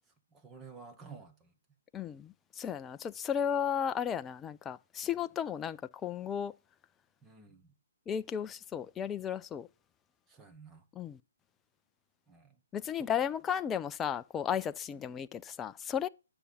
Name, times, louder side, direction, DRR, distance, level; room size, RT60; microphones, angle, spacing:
voice 1, 0.3-1.5 5.0-5.1 7.2-7.8 10.3-10.8 12.3-12.6 13.0-13.1, right 5 dB, 15° right, 1.5 m, -52 dB
voice 2, 1.9-6.5 8.1-9.7 11.0-11.2 12.7-16.1, left 8 dB, 15° left, 0.4 m, -34 dB
10.0 x 6.9 x 5.6 m
hypercardioid pair, 145°, 0 cm